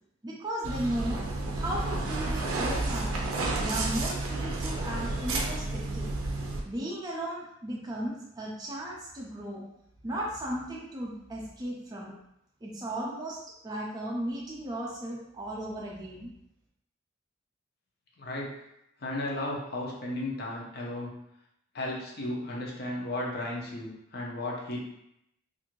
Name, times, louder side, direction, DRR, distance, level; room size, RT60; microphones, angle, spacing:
voice 1, 0.2-1.2 1.5-3.2 3.6-6.1 6.6-9.6 10.0-12.2 12.6-16.3, right 1 dB, 20° right, -3 dB, 0.4 m, -35 dB
sound 1, 0.6-6.6, right 2 dB, 85° right, 0.5 m, -31 dB
voice 2, 18.2-18.5 19.0-21.2 21.7-24.8, left 1 dB, 50° left, -3 dB, 0.6 m, -34 dB
2.6 x 2.5 x 3.0 m, 0.81 s
head